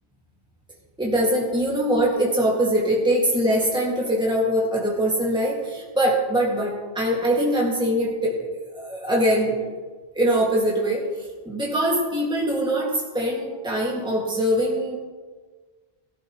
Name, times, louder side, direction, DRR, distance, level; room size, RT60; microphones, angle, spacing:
voice 1, 1.0-9.6 10.1-15.0, right 1 dB, 5° right, -4 dB, 2.1 m, -23 dB
18.0 x 11.5 x 3.2 m, 1.4 s
omnidirectional pair, 1.1 m